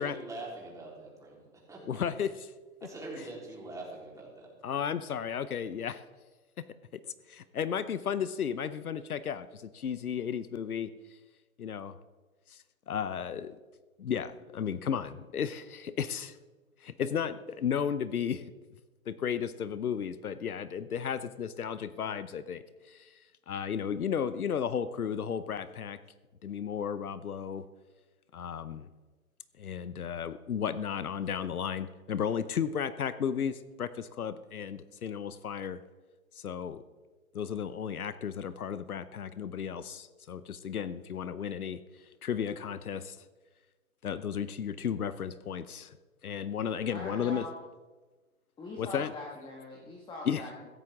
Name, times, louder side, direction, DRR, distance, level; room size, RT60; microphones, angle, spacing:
voice 1, 0.0-2.0 2.8-4.5, right 2 dB, 5° right, -4 dB, 3.8 m, -43 dB
voice 2, 1.9-2.5 4.6-6.0 6.9-7.0 7.3-10.9 11.6-12.0 12.5-13.6 14.0-16.4 16.8-18.4 19.1-23.2 23.5-26.0 26.4-27.6 28.3-28.9 29.6-35.8 36.4-36.8 37.3-41.8 42.2-43.2 44.0-46.0 46.2-47.4 48.8-49.1 50.2-50.4, left 8 dB, 80° left, 14 dB, 0.8 m, -34 dB
voice 3, 46.6-47.6 48.6-50.7, left 2 dB, 10° left, -1 dB, 1.6 m, -43 dB
16.0 x 14.5 x 3.7 m, 1.3 s
hypercardioid pair, 130°, 43 cm